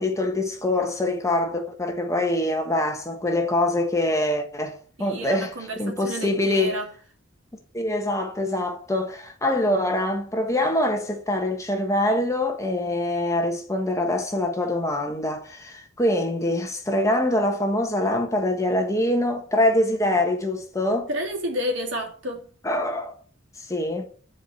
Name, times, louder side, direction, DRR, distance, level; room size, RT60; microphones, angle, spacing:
voice 1, 0.0-6.8 7.7-21.1 22.6-23.2 23.6-24.0, left 1 dB, 15° left, 1.4 m, -24 dB
voice 2, 5.0-6.9 21.1-22.4, equal, 65° right, 2.9 m, -30 dB
10.0 x 4.9 x 6.3 m
head